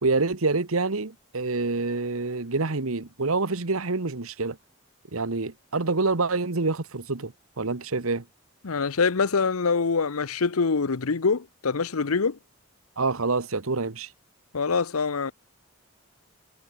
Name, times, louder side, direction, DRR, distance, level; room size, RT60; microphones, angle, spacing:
voice 1, 0.0-4.6 5.1-8.2 13.0-14.1, right 3 dB, 80° right, 1.3 m, -27 dB
voice 2, 8.6-12.4 14.5-15.3, left 4 dB, 90° left, 0.8 m, -24 dB
head